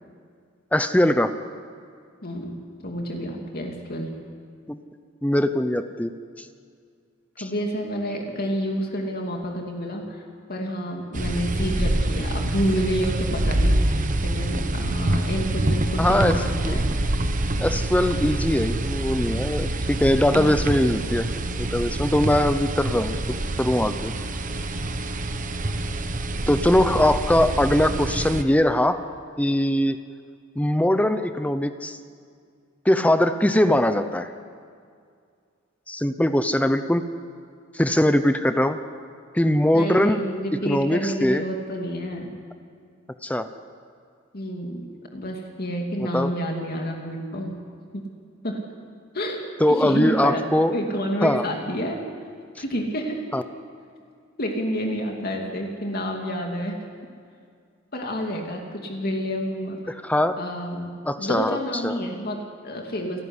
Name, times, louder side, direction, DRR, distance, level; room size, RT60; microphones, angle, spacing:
voice 1, 0.7-1.3 4.7-4.8 5.2-6.1 7.4-7.5 16.0-16.3 16.6-16.8 17.6-21.3 21.6-23.2 23.6-24.1 26.5-29.0 29.4-30.0 30.6-32.0 32.8-34.3 35.9-37.0 37.7-38.8 39.3-40.2 40.6-41.4 43.2-43.5 46.1-46.3 49.6-50.7 51.2-51.5 53.3-53.4 60.0-60.3 61.1-61.6 61.8-61.9, left 1 dB, 5° left, 10 dB, 0.7 m, -21 dB
voice 2, 2.2-2.6 2.8-4.1 7.4-10.2 10.5-16.9 20.3-20.7 39.7-42.3 44.3-47.6 47.9-48.0 48.4-48.6 49.1-50.4 50.7-52.0 52.6-53.3 54.4-56.8 57.9-59.9 60.4-60.9 61.2-63.2, equal, 50° left, 1 dB, 2.6 m, -29 dB
sound 1, 11.1-28.4, right 1 dB, 40° right, 1.1 m, -26 dB
28.5 x 12.5 x 9.8 m, 2.2 s
head